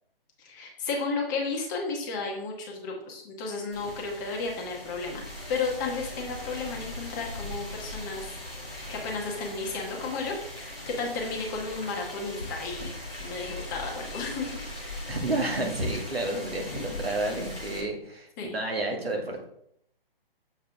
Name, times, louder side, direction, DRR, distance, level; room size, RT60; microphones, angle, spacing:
voice 1, 0.4-8.3 8.9-12.9 13.2-15.0 18.4-18.6, left 4 dB, 20° left, 0 dB, 1.1 m, -33 dB
sound 1, 3.7-17.8, left 1 dB, 10° right, 0.3 m, -39 dB
voice 2, 15.1-19.5, right 2 dB, 85° right, 1 dB, 1.8 m, -30 dB
7.0 x 4.7 x 3.5 m, 0.71 s
figure-of-eight pair, 145°, 30 cm